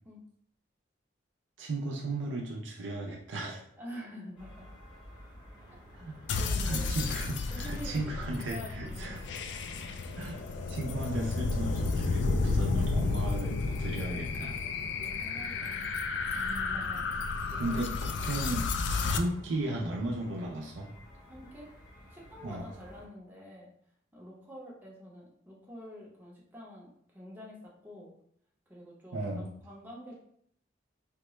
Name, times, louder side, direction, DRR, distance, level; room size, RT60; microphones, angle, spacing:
voice 1, 1.6-3.6 5.9-6.2 6.6-9.2 10.2-10.4 10.7-14.6 17.6-20.9 22.4-22.7 29.1-29.6, right 2 dB, 80° right, -1 dB, 0.5 m, -35 dB
voice 2, 3.8-4.7 5.7-5.8 6.4-7.1 7.5-9.2 14.6-15.9 16.3-18.3 21.3-21.7 22.1-23.7 24.1-28.1 28.7-30.2, equal, 10° right, -4 dB, 0.7 m, -47 dB
sound 1, 4.4-23.1, equal, 25° left, 1.1 m, -52 dB
sound 2, 6.3-19.2, left 4 dB, 70° left, 0.3 m, -32 dB
3.6 x 2.2 x 3.0 m, 0.66 s
head